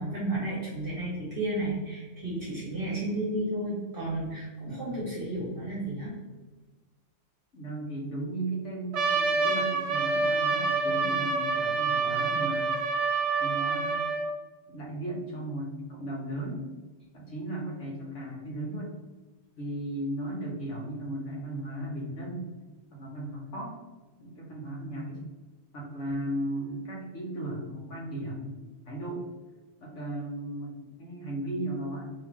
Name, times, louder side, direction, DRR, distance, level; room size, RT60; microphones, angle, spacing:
voice 1, 0.0-6.1, right 1 dB, 45° right, -6 dB, 1.2 m, -32 dB
voice 2, 4.6-5.1 7.5-12.8 13.4-14.2 14.7-16.7 17.1-19.0 19.6-22.5 22.9-23.8 24.2-25.3 25.7-28.6 28.9-29.3 29.8-32.1, right 1 dB, 65° left, -2 dB, 1.3 m, -36 dB
Trumpet, 8.9-14.3, right 4 dB, 70° right, 1.0 m, -27 dB
3.7 x 3.1 x 3.0 m, 1.3 s
omnidirectional pair, 1.3 m